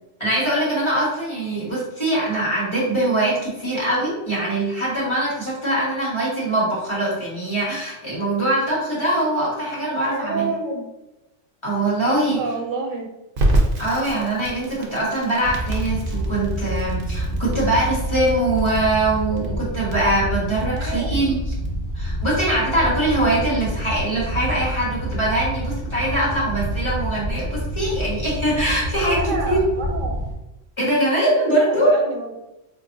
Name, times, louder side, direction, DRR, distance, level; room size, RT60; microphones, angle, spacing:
voice 1, 0.2-10.5 11.6-12.4 13.8-21.4 21.9-29.6 30.8-32.0, right 1 dB, 25° left, -7 dB, 1.3 m, -22 dB
voice 2, 10.0-10.9 12.1-13.1 20.6-21.2 29.1-30.3 31.4-32.3, right 3 dB, 85° right, 2 dB, 1.1 m, -29 dB
Crackle, 13.4-24.1, right 1 dB, 50° right, 0.8 m, -28 dB
sound 1, 15.4-30.3, equal, 80° left, 1.6 m, -27 dB
4.3 x 2.6 x 2.6 m, 0.96 s
omnidirectional pair, 1.3 m